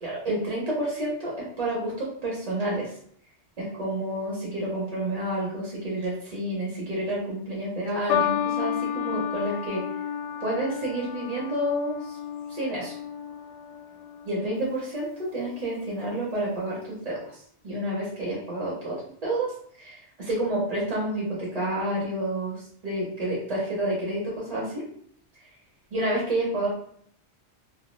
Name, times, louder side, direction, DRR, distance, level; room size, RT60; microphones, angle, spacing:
voice 1, 0.0-2.9 3.6-9.8 10.4-12.2 12.5-12.9 14.2-24.8 25.9-26.7, right 1 dB, 40° right, -5 dB, 0.8 m, -29 dB
sound 1, 8.1-14.6 15.5-15.9, left 9 dB, 85° left, 0.9 m, -31 dB
2.2 x 2.2 x 3.1 m, 0.63 s
omnidirectional pair, 1.2 m